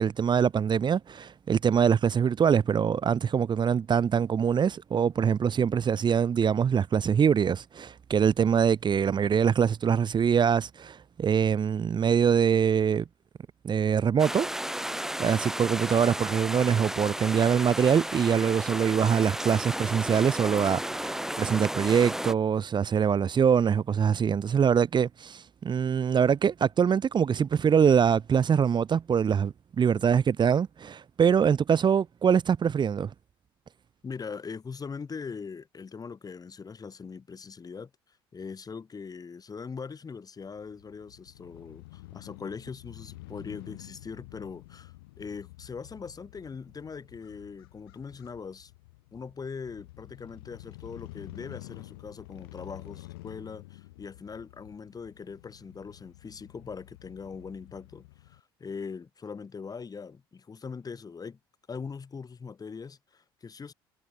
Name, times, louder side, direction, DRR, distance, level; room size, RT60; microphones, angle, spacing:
voice 1, 0.0-13.0 13.6-14.5 15.2-33.1, right 7 dB, 40° right, 1.7 m, -24 dB
sound 1, 14.2-22.3, right 1 dB, 5° right, 6.5 m, -33 dB
voice 2, 34.0-37.9 38.3-48.7 49.1-61.4 61.7-63.7, left 5 dB, 30° left, 4.3 m, -41 dB
Crow / Motorcycle, 40.5-58.4, left 20 dB, 75° left, 3.5 m, -49 dB
hypercardioid pair, 60°, 12 cm